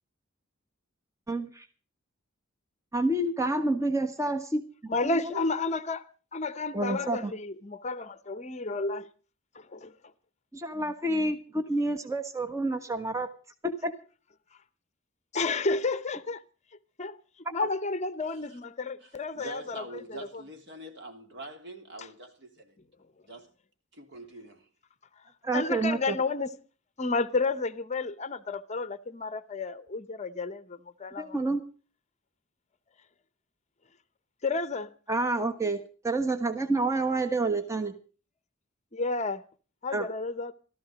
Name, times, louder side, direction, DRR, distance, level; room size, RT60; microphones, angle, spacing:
voice 1, 1.3-1.7 2.9-5.5 6.7-7.3 10.5-13.3 13.6-13.9 17.4-17.7 25.4-26.2 31.2-31.6 35.1-37.9 39.9-40.1, right 2 dB, 15° right, 1.2 m, -29 dB
voice 2, 4.9-6.0 6.3-9.1 9.6-9.9 15.3-16.4 17.0-17.2 17.5-19.8 20.1-20.2 25.5-26.5 27.0-31.4 34.4-34.9 38.9-39.4 39.8-40.5, left 3 dB, 35° left, 0.8 m, -31 dB
voice 3, 18.2-18.6 19.0-22.8 23.2-23.5 23.9-24.7, right 2 dB, 60° right, 3.2 m, -45 dB
16.0 x 13.5 x 5.1 m
head